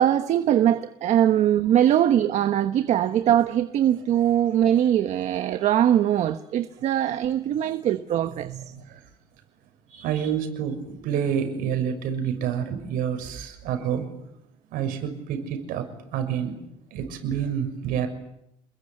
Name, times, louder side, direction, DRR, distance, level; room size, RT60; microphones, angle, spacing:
voice 1, 0.0-8.5 9.9-10.3, right 11 dB, 45° right, 1.2 m, -22 dB
voice 2, 8.4-9.0 10.0-14.1 14.7-16.6 16.9-18.1, right 8 dB, 60° right, 6.6 m, -28 dB
29.0 x 21.5 x 8.9 m
cardioid pair, 165°, 16 cm